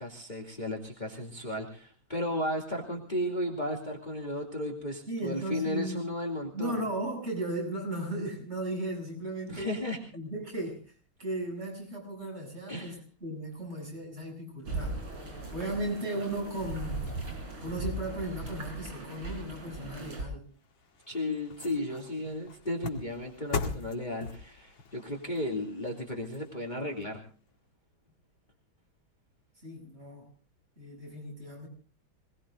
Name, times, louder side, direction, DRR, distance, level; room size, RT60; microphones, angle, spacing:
voice 1, 0.0-6.8 9.5-10.0 12.7-13.0 21.1-27.2, left 1 dB, 20° left, 0 dB, 2.7 m, -34 dB
voice 2, 5.1-6.1 6.5-9.8 10.1-10.9 11.2-15.0 15.5-17.1 17.6-20.5 21.9-22.1 29.6-30.3 30.8-31.7, right 1 dB, 30° right, 0 dB, 7.7 m, -36 dB
sound 1, 14.6-20.2, right 2 dB, 70° right, 5.2 m, -38 dB
sound 2, 20.5-27.0 27.5-27.6, left 4 dB, 70° left, 2.6 m, -40 dB
26.5 x 19.5 x 2.5 m, 0.39 s
omnidirectional pair, 2.3 m